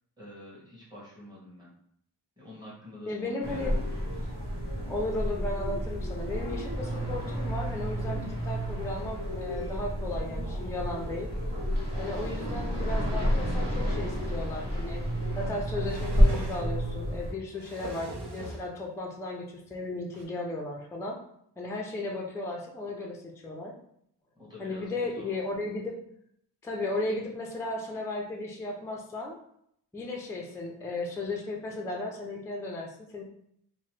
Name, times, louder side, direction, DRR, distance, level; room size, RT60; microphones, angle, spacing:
voice 1, 0.2-1.7 2.4-4.3 10.1-10.6 11.7-12.0 24.3-25.6, left 1 dB, 10° right, -7 dB, 1.2 m, -48 dB
voice 2, 3.1-3.7 4.9-11.3 12.0-15.0 15.4-21.2 21.6-23.7 24.6-26.0 26.6-29.3 29.9-33.2, left 2 dB, 10° left, 0 dB, 0.3 m, -35 dB
sound 1, 3.4-17.3, equal, 45° right, 1.2 m, -30 dB
sound 2, 15.4-16.7 17.3-18.7 19.7-19.8 20.1-20.2, right 2 dB, 80° right, 0.7 m, -41 dB
2.9 x 2.1 x 3.1 m, 0.71 s
wide cardioid pair, 120°, 40 cm